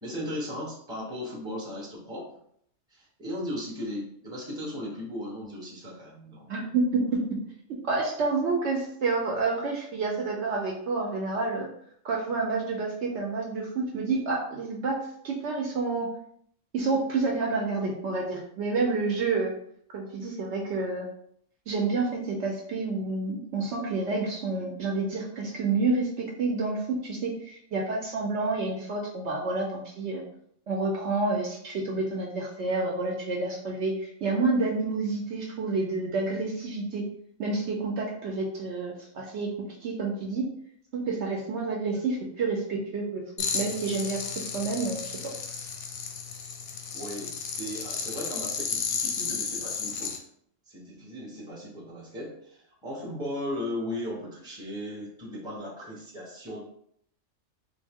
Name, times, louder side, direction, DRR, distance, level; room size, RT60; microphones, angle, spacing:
voice 1, 0.0-2.3 2.9-6.7 41.8-42.0 46.9-50.2 50.7-56.6, left 1 dB, 5° right, -4 dB, 0.7 m, -37 dB
voice 2, 6.5-7.2 7.8-11.7 12.0-15.0 15.2-16.1 16.7-19.5 19.9-21.1 21.7-30.2 30.7-37.0 37.4-39.5 39.8-40.4 40.9-43.2 43.5-44.2 44.5-45.0, right 3 dB, 65° right, -1 dB, 0.8 m, -29 dB
sound 1, 43.4-50.2, left 6 dB, 90° left, 1.0 m, -33 dB
3.7 x 2.1 x 3.4 m, 0.66 s
omnidirectional pair, 1.4 m